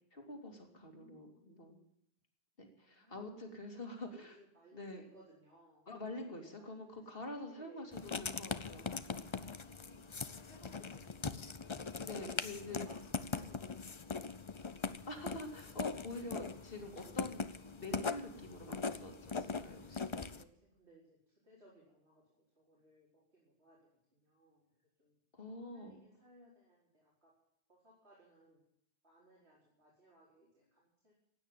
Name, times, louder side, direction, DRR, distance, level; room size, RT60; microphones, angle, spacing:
voice 1, 0.1-1.8 2.6-4.3 4.7-5.1 5.9-8.9 12.0-12.8 15.1-17.4 17.7-20.1 25.3-26.0, left 2 dB, 60° left, 3 dB, 2.9 m, -46 dB
voice 2, 0.7-1.3 2.8-7.1 7.5-7.9 9.8-11.4 12.6-14.4 20.2-22.2 22.6-24.7 25.0-25.2 25.7-27.3 27.7-28.6 29.0-31.1, equal, 80° right, -6 dB, 5.2 m, -63 dB
Writing, 7.9-20.4, left 4 dB, 35° left, 0.6 m, -41 dB
16.0 x 9.3 x 9.0 m, 0.76 s
omnidirectional pair, 1.1 m